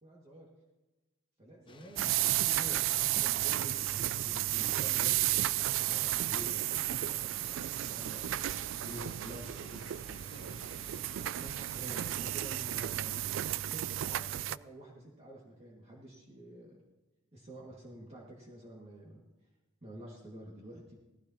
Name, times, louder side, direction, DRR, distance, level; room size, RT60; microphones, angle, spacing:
voice 1, 0.0-0.5 1.4-7.2 7.9-10.9 11.3-13.1 13.7-16.8 17.3-19.2 19.8-20.9, right 1 dB, 30° right, -3 dB, 2.0 m, -49 dB
sound 1, 1.7-12.2, left 3 dB, 25° left, 0.6 m, -55 dB
sound 2, 2.0-14.6, right 14 dB, 75° right, 0.3 m, -33 dB
17.5 x 15.0 x 2.9 m, 1.1 s
head